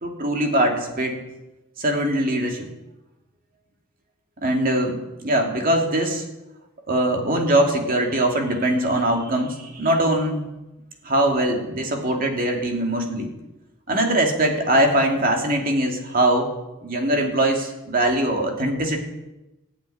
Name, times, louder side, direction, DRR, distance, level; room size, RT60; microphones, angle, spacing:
voice 1, 0.0-1.2 1.8-2.7 4.4-5.0 5.2-6.2 6.9-10.5 11.0-13.3 13.9-16.5 16.8-19.0, right 1 dB, 40° right, 2 dB, 2.4 m, -22 dB
14.0 x 8.2 x 9.8 m, 1.0 s
head